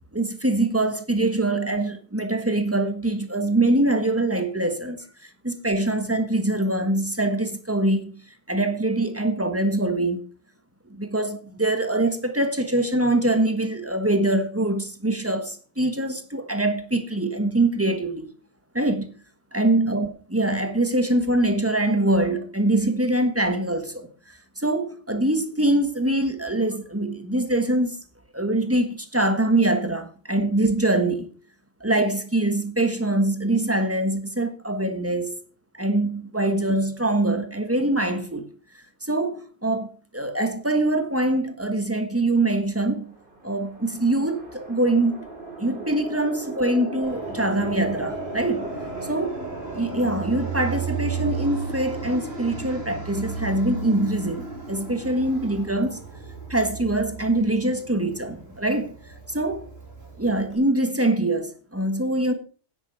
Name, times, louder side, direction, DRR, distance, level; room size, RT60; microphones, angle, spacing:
voice 1, 0.1-5.0 5.4-8.1 8.5-10.3 10.9-18.3 18.7-19.1 19.5-24.1 24.6-27.9 28.3-31.3 31.8-35.4 35.7-38.5 39.0-43.1 43.4-45.2 45.6-48.7 49.0-49.3 49.8-56.0 56.5-58.9 59.3-59.7 60.2-62.3, right 2 dB, 15° right, 1.4 m, -23 dB
sound 1, 43.1-53.5, right 2 dB, 55° right, 3.5 m, -37 dB
Fixed-wing aircraft airplane, 47.0-60.5, right 5 dB, 75° right, 3.5 m, -35 dB
10.0 x 8.4 x 5.7 m
omnidirectional pair, 1.1 m